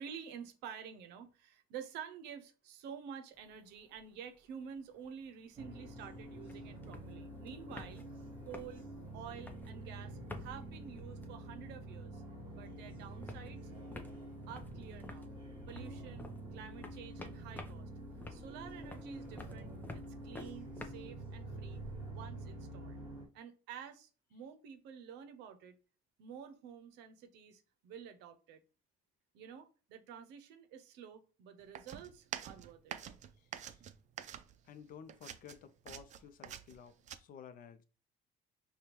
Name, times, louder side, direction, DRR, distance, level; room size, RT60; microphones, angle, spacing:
voice 1, 0.0-8.9 9.1-12.2 12.5-13.7 14.5-15.3 15.7-17.9 18.3-23.0 23.3-25.8 26.2-28.6 29.3-33.0, right 7 dB, 90° right, 0.6 m, -50 dB
sound 1, 3.4-4.1 4.3-4.4 4.7-12.1 12.3-22.1, left 2 dB, 10° left, 0.5 m, -52 dB
sound 2, 5.6-23.3, right 1 dB, 30° right, 1.2 m, -47 dB
sound 3, 31.7-34.8 35.1-37.2, right 9 dB, 45° right, 0.4 m, -46 dB
voice 2, 33.4-33.8 34.6-37.8, left 8 dB, 60° left, 0.5 m, -54 dB
5.1 x 2.2 x 3.0 m
cardioid pair, 110°, 17 cm